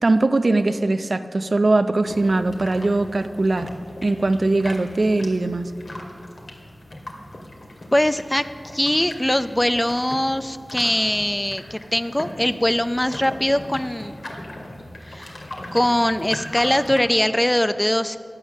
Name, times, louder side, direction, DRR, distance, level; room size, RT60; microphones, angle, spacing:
voice 1, 0.0-3.7 4.0-5.7, right 2 dB, 60° right, 10 dB, 0.6 m, -21 dB
sound 1, 2.0-17.0, left 1 dB, 60° left, 2.2 m, -38 dB
voice 2, 7.9-8.4 8.7-14.2 15.1-15.4 15.7-18.2, left 1 dB, 15° left, 11 dB, 0.5 m, -21 dB
15.5 x 9.9 x 6.5 m, 2.3 s
wide cardioid pair, 50°, 0 cm